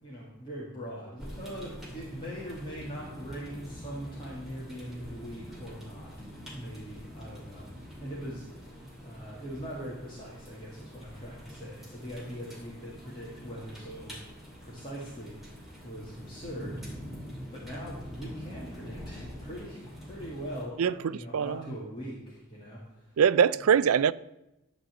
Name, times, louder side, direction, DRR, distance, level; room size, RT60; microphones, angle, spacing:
voice 1, 0.0-6.1 6.5-7.7 8.0-8.4 9.0-14.1 14.6-15.4 15.8-16.8 17.5-22.8, equal, 20° left, 2.0 m, -41 dB
sound 1, 1.2-20.6, equal, ahead, 2.4 m, -45 dB
voice 2, 23.2-24.1, right 7 dB, 70° right, 0.4 m, -22 dB
12.5 x 4.2 x 8.1 m
head